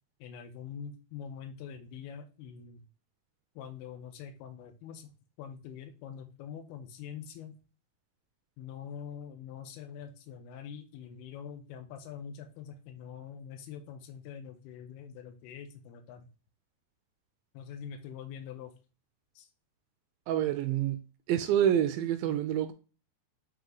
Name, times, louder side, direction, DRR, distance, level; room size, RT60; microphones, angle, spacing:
voice 1, 0.2-2.8 3.6-5.1 5.4-7.6 8.6-16.3 17.5-18.7 19.4-19.5, left 8 dB, 90° left, 2.8 m, -44 dB
voice 2, 20.3-21.0 21.3-22.7, right 10 dB, 80° right, 2.2 m, -27 dB
8.5 x 3.0 x 3.8 m
omnidirectional pair, 4.4 m